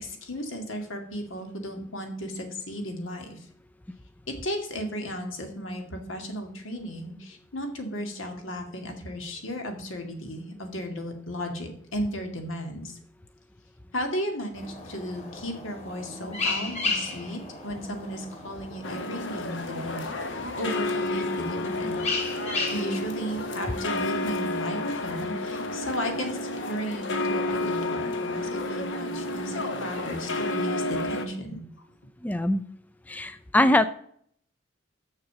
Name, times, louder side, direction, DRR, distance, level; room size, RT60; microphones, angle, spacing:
voice 1, 0.0-3.5 4.4-13.0 13.9-20.0 20.3-22.0 22.7-31.6, equal, 85° left, 4 dB, 2.1 m, -34 dB
sound 1, 14.5-25.5, left 3 dB, 35° left, 2.2 m, -36 dB
sound 2, 18.8-31.3, left 2 dB, 65° left, 1.1 m, -31 dB
voice 2, 32.2-32.6 33.1-33.8, left 1 dB, 10° left, 12 dB, 0.3 m, -22 dB
6.9 x 6.6 x 6.7 m, 0.64 s
head